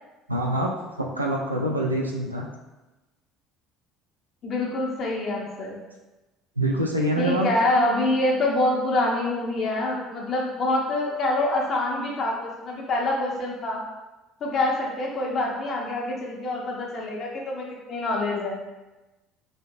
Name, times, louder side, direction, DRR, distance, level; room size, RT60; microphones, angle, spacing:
voice 1, 0.3-0.7 1.0-2.4 6.6-7.5, right 1 dB, 90° right, -1 dB, 0.4 m, -25 dB
voice 2, 4.4-5.8 7.2-13.8 14.4-18.6, left 2 dB, 45° left, -2 dB, 0.7 m, -26 dB
3.3 x 2.8 x 2.7 m, 1.1 s
figure-of-eight pair, 60°, 0 cm